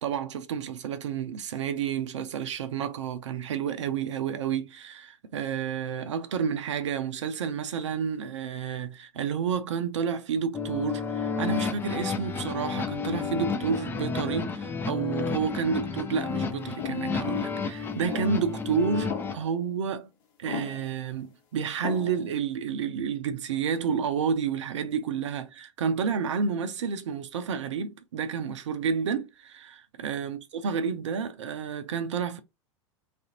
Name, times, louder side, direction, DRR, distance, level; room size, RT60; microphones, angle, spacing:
voice 1, 0.0-20.1 20.4-32.4, right 6 dB, 60° right, 0.5 m, -30 dB
sound 1, 10.5-19.3, left 5 dB, 10° left, 0.4 m, -31 dB
sound 2, 16.8-17.1 18.1-18.5 19.1-19.6 20.5-21.0 21.8-22.3, left 7 dB, 45° left, 1.1 m, -37 dB
3.3 x 2.5 x 2.7 m
figure-of-eight pair, 85°, 17 cm